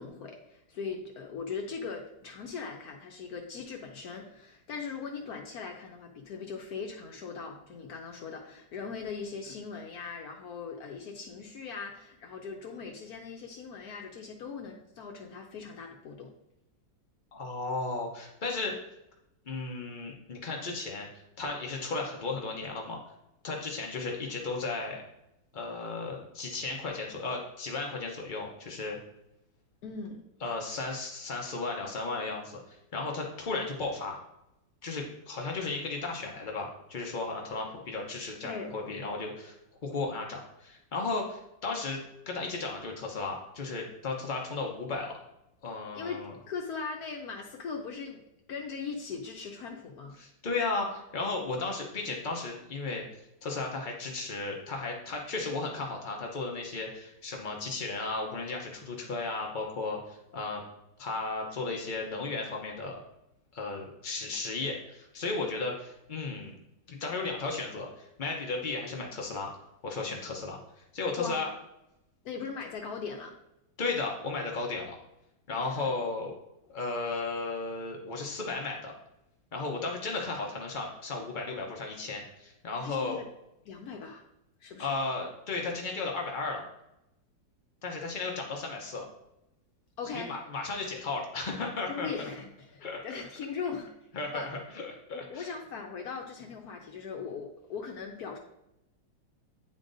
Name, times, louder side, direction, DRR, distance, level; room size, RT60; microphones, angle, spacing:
voice 1, 0.0-16.3 29.8-30.2 38.4-38.7 45.9-48.2 48.5-50.2 71.2-71.4 72.2-73.3 75.7-75.9 82.8-83.3 83.7-84.2 84.6-84.9 90.0-90.3 91.9-93.9 94.3-94.5 95.1-98.4, left 5 dB, 70° left, 2 dB, 1.0 m, -39 dB
voice 2, 17.3-18.7 19.5-21.1 21.4-23.0 23.4-25.0 25.5-29.0 30.4-34.1 34.8-39.6 39.8-42.0 42.3-45.1 45.6-46.3 50.2-53.0 53.4-60.6 61.0-63.0 63.5-66.5 66.9-69.5 69.8-70.6 70.9-71.5 73.8-75.0 75.5-76.3 76.7-78.9 79.5-83.2 84.8-86.6 87.8-89.1 90.1-92.3 92.8-93.0 94.1-95.5, left 3 dB, 90° left, 0 dB, 0.4 m, -35 dB
9.6 x 3.8 x 2.6 m, 0.86 s
omnidirectional pair, 2.0 m